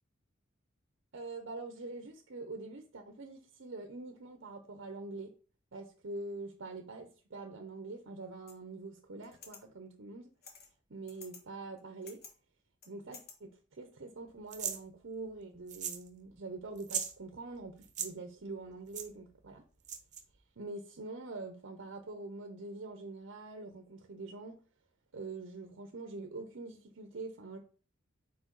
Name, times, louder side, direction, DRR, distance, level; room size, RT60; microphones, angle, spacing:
voice 1, 1.1-5.3 5.7-10.3 10.9-12.2 12.9-19.6 20.6-24.6 25.1-27.6, right 3 dB, 65° right, 0.7 m, -44 dB
sound 1, 8.5-8.6 9.2-9.6 10.4-10.7 11.1-11.4 11.8-12.3 12.8-13.3, left 5 dB, 50° left, 1.2 m, -52 dB
sound 2, 14.5-14.8 15.7-16.1 16.3-16.4 16.8-17.1 17.8-18.1 18.9-19.1 19.8-20.2, right 8 dB, 40° right, 0.8 m, -37 dB
4.6 x 4.6 x 4.6 m
head